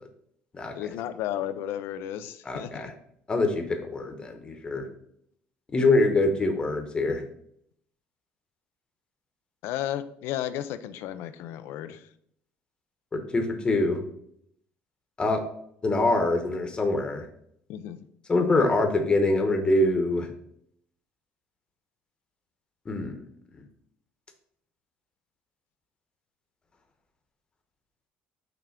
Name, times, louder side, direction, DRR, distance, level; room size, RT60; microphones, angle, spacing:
voice 1, 0.7-2.8 9.6-12.1 17.7-18.0, left 11 dB, 75° left, 12 dB, 0.5 m, -33 dB
voice 2, 2.4-2.9 3.3-4.9 5.7-7.2 13.1-14.0 15.2-15.4 15.8-17.2 18.3-20.3 22.8-23.2, left 2 dB, 20° left, 4 dB, 1.0 m, -24 dB
5.8 x 3.5 x 5.0 m, 0.69 s
cardioid pair, 135°, 4 cm